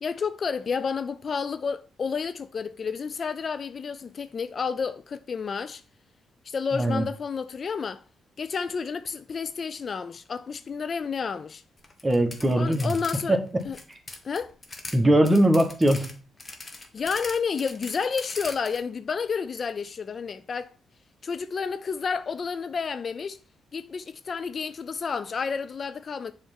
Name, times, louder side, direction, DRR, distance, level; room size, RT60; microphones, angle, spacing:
voice 1, 0.0-5.8 6.5-8.0 8.4-11.6 12.5-13.4 13.6-13.8 14.2-14.5 16.9-20.7 21.2-23.4 23.7-26.3, left 5 dB, 50° left, 0.4 m, -30 dB
voice 2, 6.7-7.0 12.0-12.9 13.3-13.6 14.9-16.1, right 1 dB, 20° right, 1.5 m, -21 dB
sound 1, 11.8-13.2 13.5-15.0 15.2-18.8, left 2 dB, 30° left, 1.5 m, -40 dB
6.8 x 3.4 x 5.5 m
hypercardioid pair, 50°, 0 cm